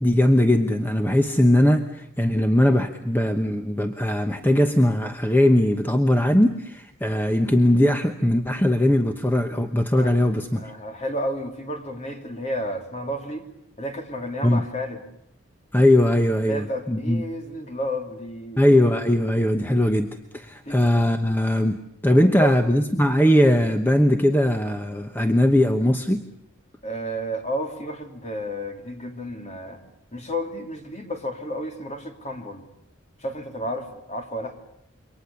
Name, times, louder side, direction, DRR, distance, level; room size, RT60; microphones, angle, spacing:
voice 1, 0.0-10.7 14.4-14.6 15.7-17.2 18.6-26.2, left 1 dB, 10° left, 6 dB, 1.0 m, -20 dB
voice 2, 10.6-13.5 13.8-15.0 16.5-18.6 20.6-20.8 22.1-22.5 22.9-23.0 26.8-29.8 30.1-32.7 33.2-34.6, equal, 35° left, 4 dB, 3.1 m, -31 dB
27.5 x 24.0 x 7.0 m, 0.78 s
head